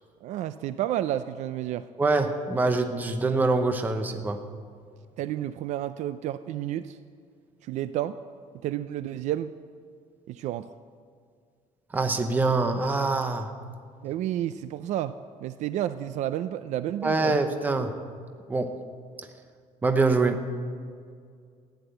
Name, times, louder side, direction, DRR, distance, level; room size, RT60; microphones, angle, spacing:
voice 1, 0.2-1.9 5.2-7.0 7.7-8.2 8.6-9.5 10.3-10.7 14.0-17.4, right 12 dB, 60° right, 12 dB, 0.4 m, -31 dB
voice 2, 2.0-4.4 11.9-13.5 17.0-17.9 18.5-18.8 19.8-20.4, right 3 dB, 15° right, 6 dB, 0.7 m, -24 dB
15.0 x 10.5 x 7.9 m, 2.1 s
cardioid pair, 180°, 14 cm